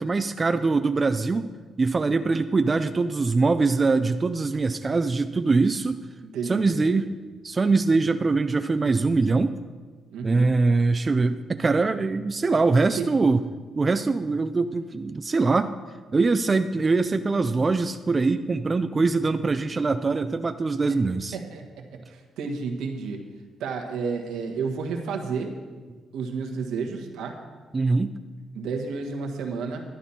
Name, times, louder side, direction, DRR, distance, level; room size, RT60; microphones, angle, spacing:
voice 1, 0.0-1.5 1.8-6.0 6.4-7.1 7.4-9.6 10.2-13.4 13.7-15.7 16.1-21.4 27.7-28.1, right 3 dB, 30° right, 9 dB, 0.4 m, -23 dB
voice 2, 6.3-7.0 10.1-10.5 13.0-13.1 19.4-19.7 20.9-21.0 21.3-23.2 23.6-25.5 26.1-27.4 28.5-29.8, right 5 dB, 85° right, 3 dB, 1.3 m, -31 dB
11.0 x 10.0 x 4.3 m, 1.4 s
cardioid pair, 90°, 0 cm